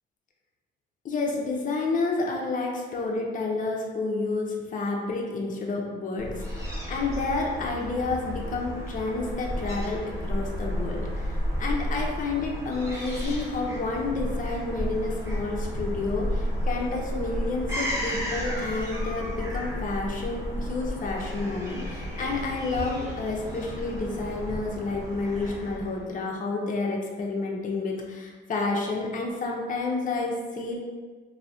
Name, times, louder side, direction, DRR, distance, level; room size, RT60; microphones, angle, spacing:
voice 1, 1.0-30.7, left 3 dB, 40° left, -1 dB, 0.6 m, -30 dB
Fowl / Gull seagull, 6.2-26.1, equal, 15° right, 0.9 m, -32 dB
3.1 x 2.7 x 2.7 m, 1.4 s
cardioid pair, 90°, 20 cm